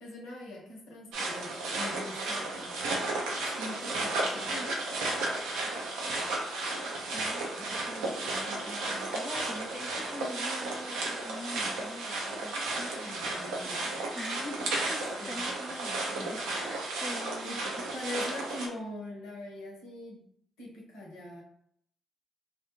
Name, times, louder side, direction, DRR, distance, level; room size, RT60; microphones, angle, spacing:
voice 1, 0.0-2.8 3.5-4.5 13.0-14.0 15.2-15.5 17.1-20.3 20.6-21.4, left 1 dB, 80° left, -2 dB, 0.8 m, -42 dB
sound 1, 1.1-18.7, right 2 dB, 80° right, 0.5 m, -33 dB
voice 2, 7.1-13.2 14.1-18.0, left 1 dB, 20° left, 6 dB, 0.5 m, -44 dB
2.5 x 2.3 x 3.0 m, 0.68 s
hypercardioid pair, 40°, 0 cm